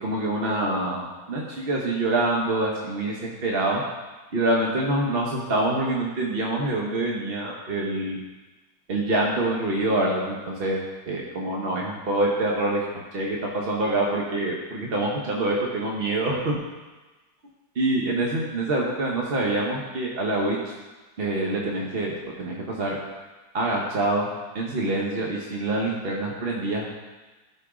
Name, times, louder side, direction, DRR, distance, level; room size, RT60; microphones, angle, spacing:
voice 1, 0.0-3.8 4.3-8.2 8.9-12.8 13.1-16.6 17.8-20.7 21.2-22.1 22.4-23.0 23.5-24.3 24.5-26.9, right 2 dB, 40° right, -2 dB, 0.8 m, -26 dB
12.5 x 4.7 x 4.9 m, 1.2 s
omnidirectional pair, 2.1 m